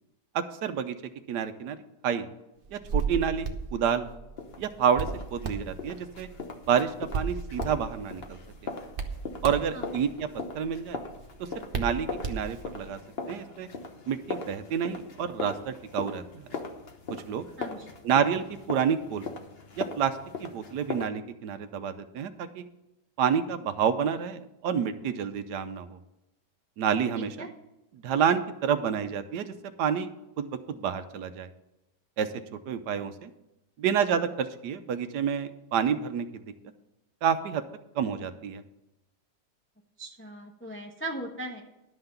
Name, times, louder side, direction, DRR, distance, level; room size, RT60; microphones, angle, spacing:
voice 1, 0.3-1.0 1.3-1.8 2.0-2.3 2.7-4.0 4.6-6.3 6.7-8.4 9.4-10.3 10.5-11.0 11.4-13.0 13.3-13.7 14.1-16.4 17.3-17.5 18.0-19.3 19.8-20.1 20.4-22.6 23.2-26.0 26.8-27.5 28.0-30.1 30.4-31.5 32.2-32.3 32.7-33.3 33.8-36.4 37.2-37.6 37.9-38.6, right 7 dB, 75° right, 10 dB, 1.3 m, -29 dB
Hands, 2.6-12.9, right 4 dB, 40° right, 0.9 m, -36 dB
sound 1, 4.4-21.0, left 4 dB, 40° left, 1.1 m, -40 dB
voice 2, 17.6-17.9 27.1-27.5 40.0-41.6, right 1 dB, 10° left, 1 dB, 0.7 m, -38 dB
11.5 x 5.8 x 6.7 m, 0.92 s
omnidirectional pair, 1.8 m